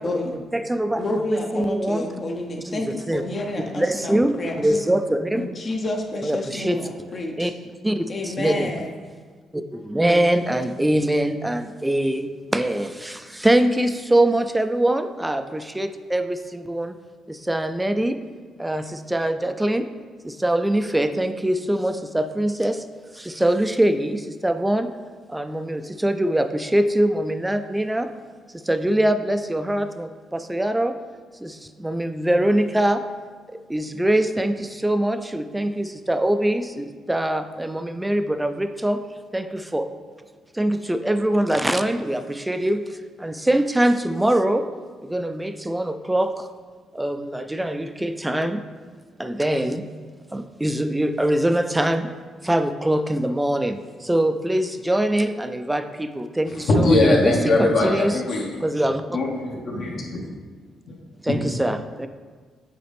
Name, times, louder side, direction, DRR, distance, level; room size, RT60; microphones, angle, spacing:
voice 1, 0.0-0.4 0.9-4.8 5.3-7.5 8.1-9.0, left 2 dB, 40° left, 2 dB, 0.8 m, -30 dB
voice 2, 0.5-2.1 2.7-2.8 3.1-3.2 3.7-5.5 6.2-6.9 7.4-7.5 7.8-8.9 9.5-17.0 17.3-18.2 18.6-19.9 20.2-22.9 23.1-24.9 25.3-28.1 28.5-31.0 31.4-33.0 33.5-39.0 39.3-39.9 40.5-44.7 45.0-46.5 46.9-48.6 49.2-49.9 50.3-52.1 52.4-58.1 58.6-59.0 61.2-62.1, right 1 dB, 10° right, 9 dB, 0.4 m, -23 dB
voice 3, 56.5-58.5 59.1-60.3 60.9-61.0 61.3-61.4, left 2 dB, 65° left, -2 dB, 1.5 m, -21 dB
7.7 x 4.1 x 3.5 m, 1.5 s
cardioid pair, 90°, 0 cm